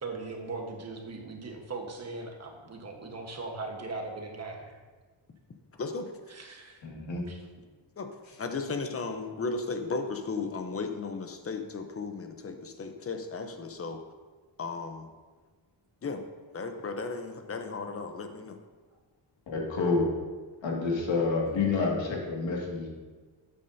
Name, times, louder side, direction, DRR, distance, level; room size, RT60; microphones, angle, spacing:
voice 1, 0.0-4.8 6.3-6.8 7.3-7.4, right 3 dB, 35° right, 2 dB, 1.3 m, -39 dB
voice 2, 5.8-6.1 8.0-14.0 14.6-15.1 16.0-16.2 16.5-18.6, left 4 dB, 30° left, 6 dB, 0.8 m, -35 dB
voice 3, 6.8-7.2 19.5-20.1 20.6-22.9, left 4 dB, 75° left, -2 dB, 2.2 m, -28 dB
12.5 x 8.6 x 2.7 m, 1.4 s
wide cardioid pair, 165°, 45 cm